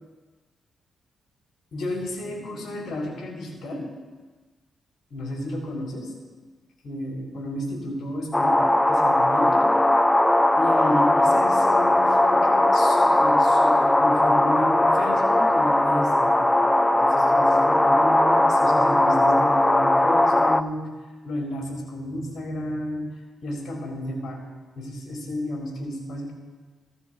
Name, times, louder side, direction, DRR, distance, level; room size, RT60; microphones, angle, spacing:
voice 1, 1.7-3.9 5.1-6.1 6.8-9.7 10.5-16.5 16.9-20.9 21.2-23.1 23.4-24.4 24.8-26.3, left 1 dB, 65° left, -2 dB, 4.3 m, -31 dB
sound 1, 8.3-20.6, left 1 dB, 15° left, 0.5 m, -19 dB
16.0 x 13.5 x 2.4 m, 1.3 s
supercardioid pair, 55°, 0 cm